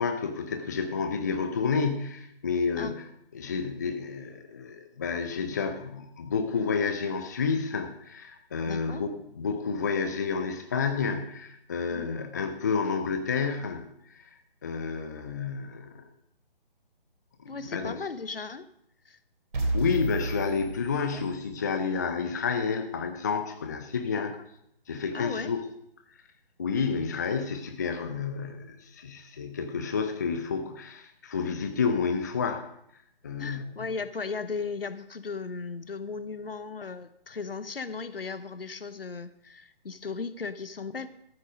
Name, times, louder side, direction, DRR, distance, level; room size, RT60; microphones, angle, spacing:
voice 1, 0.0-3.1 3.3-13.8 14.1-14.3 14.6-15.9 17.4-17.9 19.7-24.4 24.9-25.6 26.6-32.6 33.2-33.7, left 5 dB, 20° left, 7 dB, 0.5 m, -30 dB
voice 2, 8.7-9.0 11.9-12.1 17.5-18.7 19.0-19.2 21.1-21.3 24.1-24.3 25.1-25.5 33.4-41.1, left 4 dB, 70° left, 13 dB, 1.0 m, -36 dB
sound 1, 19.5-21.6, right 2 dB, 55° right, 3.2 m, -32 dB
14.0 x 8.2 x 5.2 m, 0.75 s
figure-of-eight pair, 145°, 30 cm